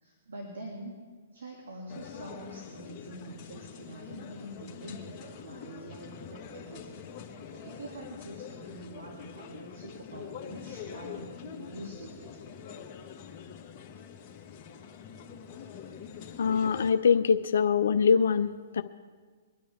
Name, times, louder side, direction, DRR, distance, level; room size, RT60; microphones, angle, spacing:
voice 1, 0.0-1.0 1.3-7.0 7.5-12.3 15.3-15.7, right 1 dB, 85° right, -1 dB, 2.6 m, -45 dB
sound 1, 1.9-16.9, left 7 dB, 30° left, 1.8 m, -45 dB
voice 2, 16.4-18.8, left 6 dB, 75° left, 9 dB, 0.6 m, -24 dB
23.5 x 10.5 x 3.6 m, 1.5 s
hypercardioid pair, 140°, 0 cm